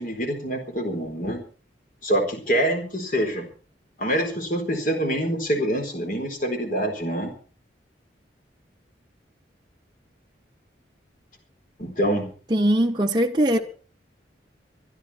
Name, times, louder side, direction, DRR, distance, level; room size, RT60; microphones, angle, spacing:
voice 1, 0.0-1.4 2.0-3.5 4.0-7.3 11.8-12.3, right 1 dB, 45° left, 4.2 m, -25 dB
voice 2, 12.5-13.6, right 1 dB, 25° right, 0.6 m, -20 dB
23.5 x 11.5 x 4.4 m
head